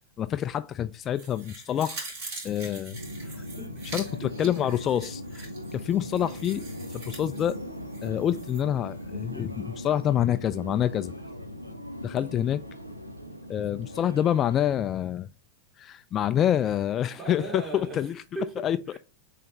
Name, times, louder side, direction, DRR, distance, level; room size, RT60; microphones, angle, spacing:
voice 1, 0.2-2.1 2.4-3.0 3.9-5.5 5.7-6.6 6.9-7.6 8.0-11.1 12.0-12.6 13.5-15.3 15.8-18.2 18.6-18.8, left 10 dB, 30° left, 0.3 m, -27 dB
sound 1, 1.1-8.6 9.0-9.1, right 3 dB, 50° right, 3.4 m, -43 dB
Subway metro underground, 2.9-14.9, left 1 dB, 85° right, 0.8 m, -39 dB
voice 2, 3.6-4.5 13.7-14.0 16.6-16.7 17.1-19.0, right 3 dB, 25° right, 2.0 m, -40 dB
7.6 x 3.4 x 4.1 m
figure-of-eight pair, 90°, 0 cm